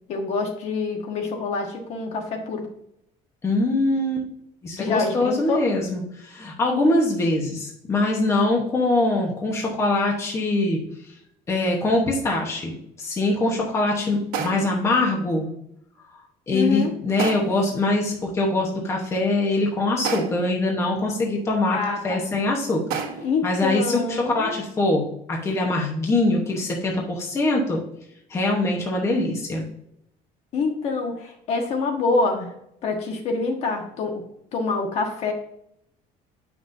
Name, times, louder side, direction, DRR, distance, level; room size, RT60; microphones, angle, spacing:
voice 1, 0.1-2.7 4.8-5.6 16.5-16.9 21.7-22.2 23.2-24.5 30.5-32.5 32.8-34.2 34.5-35.3, left 4 dB, 45° left, 3 dB, 1.2 m, -26 dB
voice 2, 3.4-4.3 4.6-10.8 11.5-15.5 16.5-21.8 22.0-22.8 23.4-24.0 24.3-27.8 28.3-29.6, left 2 dB, 20° left, -1 dB, 1.0 m, -23 dB
sound 1, 14.3-14.8 17.2-17.7 20.0-20.6 22.9-23.4, right 7 dB, 90° right, 1.3 m, -30 dB
8.1 x 5.9 x 2.6 m, 0.74 s
cardioid pair, 180°, 15 cm